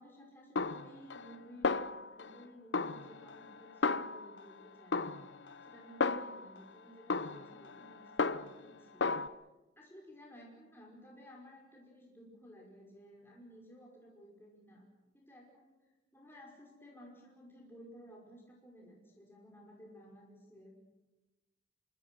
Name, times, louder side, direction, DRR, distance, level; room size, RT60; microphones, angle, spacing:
voice 1, 0.0-1.7 2.1-5.2 5.6-9.4 9.8-14.8 15.1-20.8, equal, 15° left, -2 dB, 5.5 m, -56 dB
Snare drum, 0.6-1.4 1.6-2.4 2.7-4.5 4.9-6.6 7.1-8.7 9.0-9.3, left 4 dB, 85° left, 0.8 m, -34 dB
26.5 x 24.5 x 6.3 m, 1.1 s
head